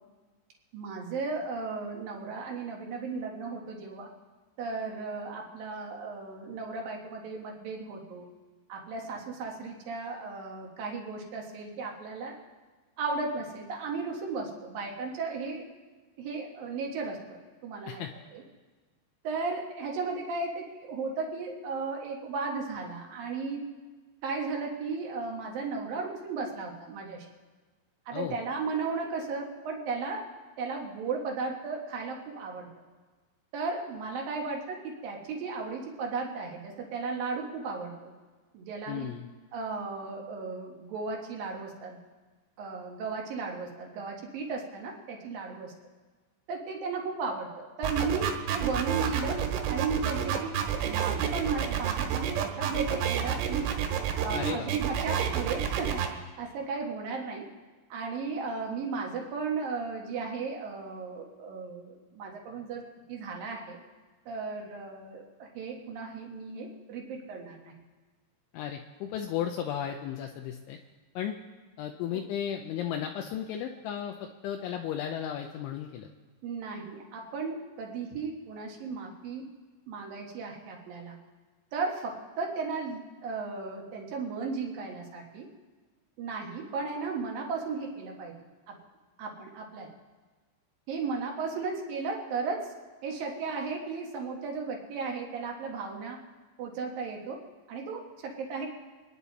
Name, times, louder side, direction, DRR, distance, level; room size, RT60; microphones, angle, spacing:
voice 1, 0.7-4.1 4.6-8.2 8.7-12.4 13.0-15.6 16.2-18.0 18.3-18.4 19.2-23.6 24.2-27.3 28.1-30.2 30.6-32.7 33.5-38.1 38.5-39.1 39.5-42.0 42.6-45.7 46.5-49.4 49.7-50.6 50.8-53.7 54.2-56.0 56.4-57.5 57.9-62.8 63.1-63.8 64.3-67.7 72.1-72.2 76.4-79.4 79.9-81.2 81.7-85.5 86.2-88.3 88.7-88.8 89.2-89.9 90.9-92.7 93.0-96.2 96.6-97.4 97.7-98.7, right 4 dB, 60° right, 0 dB, 2.6 m, -35 dB
voice 2, 38.9-39.3 54.3-54.7 68.5-70.8 71.2-71.4 71.8-76.1, left 9 dB, 80° left, 3 dB, 2.9 m, -34 dB
sound 1, 47.8-56.1, right 9 dB, 90° right, 4.0 m, -29 dB
27.0 x 10.0 x 4.1 m, 1.3 s
omnidirectional pair, 5.9 m